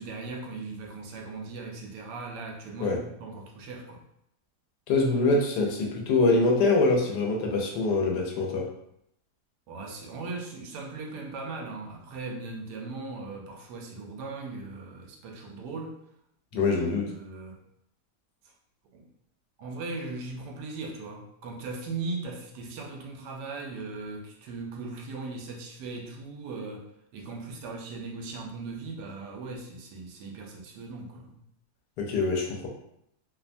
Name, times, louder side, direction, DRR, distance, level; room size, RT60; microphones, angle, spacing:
voice 1, 0.0-4.0 9.7-16.0 16.5-16.8 17.1-17.6 18.9-19.0 19.6-31.4, right 3 dB, 80° right, 1 dB, 1.2 m, -38 dB
voice 2, 4.9-8.7 16.5-17.1 32.0-32.7, left 3 dB, 80° left, 0 dB, 1.2 m, -24 dB
3.0 x 2.1 x 2.5 m, 0.75 s
omnidirectional pair, 1.8 m